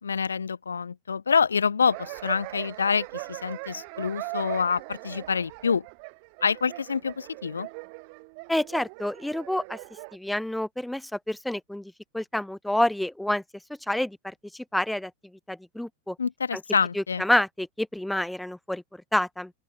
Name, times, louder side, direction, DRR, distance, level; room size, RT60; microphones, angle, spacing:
voice 1, 0.0-5.8 6.4-7.7 16.2-17.2, left 6 dB, 75° left, 1.5 m, -26 dB
sound 1, 1.9-10.2, right 36 dB, 45° right, 1.3 m, -40 dB
voice 2, 8.5-9.8 10.1-13.4 13.9-15.1 15.5-16.2 16.5-16.6 16.9-18.8 19.1-19.5, left 1 dB, 5° left, 1.1 m, -28 dB
open air
figure-of-eight pair, 90°, 0 cm